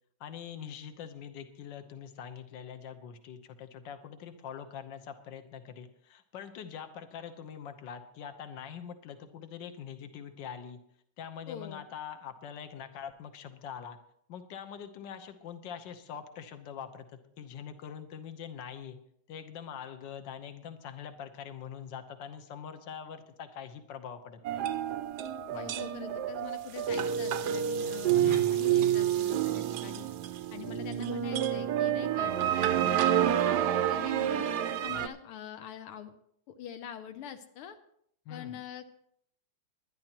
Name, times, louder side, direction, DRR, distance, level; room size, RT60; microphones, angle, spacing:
voice 1, 0.2-10.8 11.2-14.0 14.3-19.0 19.3-24.6 25.5-25.7 28.2-28.6 38.2-38.6, left 8 dB, 60° left, 7 dB, 1.6 m, -44 dB
voice 2, 11.5-11.8 25.5-30.1 30.5-33.4 33.7-34.4 34.8-36.1 36.5-37.8 38.3-38.9, left 9 dB, 85° left, 8 dB, 1.7 m, -44 dB
sound 1, 24.4-35.1, right 10 dB, 70° right, 0.9 m, -29 dB
20.5 x 11.0 x 3.0 m, 0.69 s
omnidirectional pair, 2.4 m